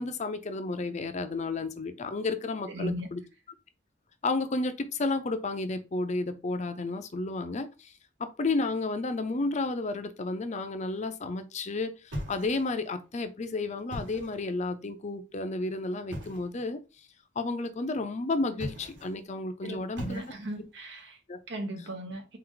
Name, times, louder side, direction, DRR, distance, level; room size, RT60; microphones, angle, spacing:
voice 1, 0.0-3.2 4.2-7.9 8.2-16.8 17.4-20.2 21.3-21.4, left 3 dB, 40° left, 0.5 m, -32 dB
voice 2, 2.7-3.1 19.6-21.2 21.5-22.4, right 1 dB, 70° right, 1.1 m, -37 dB
sound 1, 12.1-12.9 13.8-14.5 16.1-16.5 18.5-19.2 19.9-20.7, equal, 90° right, 1.6 m, -39 dB
4.5 x 2.5 x 3.9 m
head